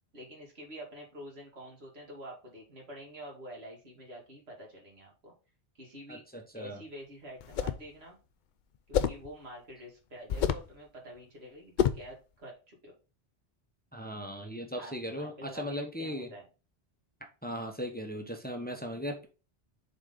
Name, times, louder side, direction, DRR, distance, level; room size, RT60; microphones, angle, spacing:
voice 1, 0.1-5.3 5.7-6.2 6.5-8.2 8.9-12.9 14.8-16.4, equal, 70° right, -2 dB, 2.5 m, -47 dB
voice 2, 6.1-6.8 13.9-16.3 17.4-19.3, equal, 10° left, 3 dB, 0.9 m, -38 dB
sound 1, 7.4-7.9 8.9-9.3 10.3-10.7 11.8-12.1, left 8 dB, 55° left, 0.6 m, -28 dB
6.6 x 4.0 x 3.7 m, 0.32 s
omnidirectional pair, 1.1 m